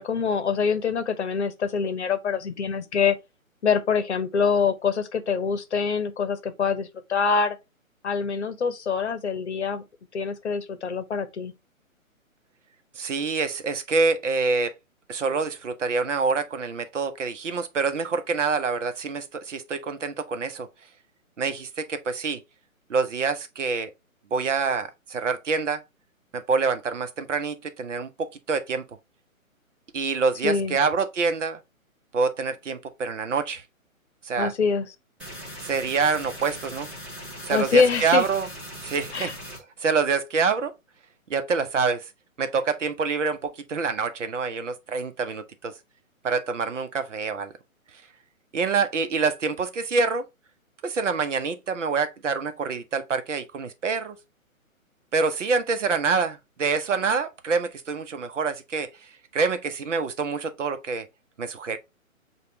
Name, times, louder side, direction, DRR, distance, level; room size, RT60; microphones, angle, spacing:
voice 1, 0.0-3.2 3.6-7.6 8.0-9.8 10.1-11.5 30.4-30.8 34.4-34.9 37.5-38.2 39.1-39.3, left 5 dB, 55° left, 0.8 m, -25 dB
voice 2, 12.9-14.7 15.1-20.7 21.4-22.4 22.9-23.9 24.3-25.8 26.3-28.8 29.9-31.6 32.1-33.6 34.2-34.5 35.6-36.9 37.4-38.5 38.8-39.3 39.8-40.7 41.3-42.1 42.4-45.7 46.2-47.5 48.5-50.2 50.8-54.2 55.1-61.1 61.4-61.8, right 4 dB, 60° right, 0.9 m, -26 dB
sound 1, 35.2-39.6, equal, 5° right, 1.0 m, -39 dB
6.6 x 2.5 x 3.1 m
figure-of-eight pair, 135°, 42 cm